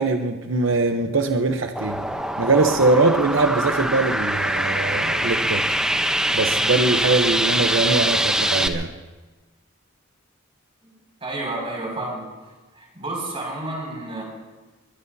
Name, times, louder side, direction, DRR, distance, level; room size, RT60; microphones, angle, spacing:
voice 1, 0.0-2.0 2.4-5.8 6.3-8.9, right 3 dB, 65° right, 5 dB, 0.9 m, -22 dB
sound 1, 1.8-8.7, right 1 dB, 5° right, 0.8 m, -23 dB
voice 2, 11.2-12.3 12.7-14.2, right 2 dB, 30° right, -1 dB, 6.1 m, -30 dB
23.0 x 21.0 x 2.8 m, 1.2 s
head